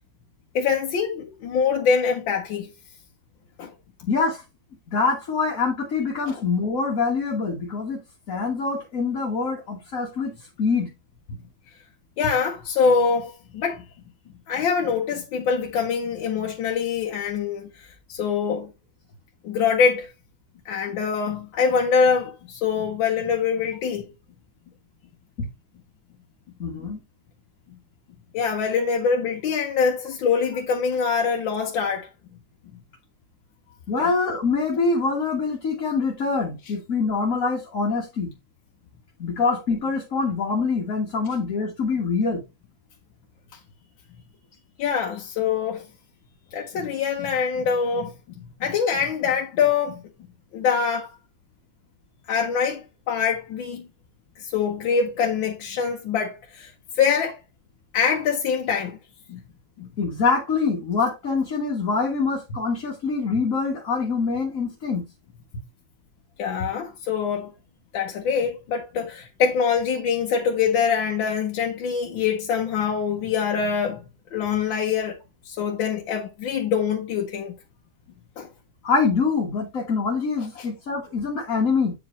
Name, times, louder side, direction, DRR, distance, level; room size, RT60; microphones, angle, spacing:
voice 1, 0.5-2.7 3.6-3.7 6.2-6.4 12.2-13.8 14.5-18.7 19.4-20.1 20.6-24.1 28.3-32.1 34.0-34.1 41.3-41.4 44.8-45.8 46.5-48.1 48.6-50.0 50.5-51.1 52.3-53.9 54.4-56.7 57.0-57.4 57.9-59.0 59.3-59.4 59.8-59.9 66.4-67.5 67.9-74.0 74.3-75.2 75.4-77.5 78.4-78.5 80.6-80.7, left 6 dB, 85° left, 1.7 m, -24 dB
voice 2, 4.1-4.4 4.9-8.0 8.3-10.3 10.6-10.9 26.6-27.0 33.9-38.3 39.2-42.4 60.0-65.0 78.8-81.9, left 4 dB, 45° left, 1.7 m, -24 dB
8.2 x 4.9 x 3.1 m
omnidirectional pair, 2.1 m